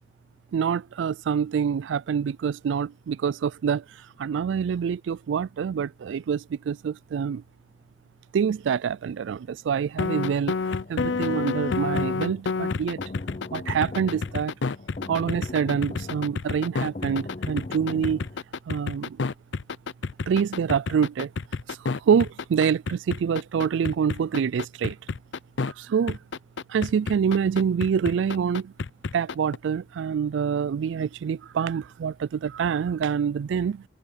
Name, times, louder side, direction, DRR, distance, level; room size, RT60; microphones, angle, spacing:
voice 1, 0.5-3.8 4.2-7.4 8.3-10.5 10.9-13.0 13.5-14.5 15.1-18.2 18.7-19.2 20.3-21.3 21.7-21.8 22.1-25.0 25.8-26.2 26.7-28.7 29.1-33.8, right 7 dB, 85° right, 0.3 m, -26 dB
sound 1, 10.0-25.7 26.1-29.6, left 4 dB, 80° left, 0.6 m, -29 dB
sound 2, 10.7-18.4, left 2 dB, 40° left, 0.6 m, -39 dB
head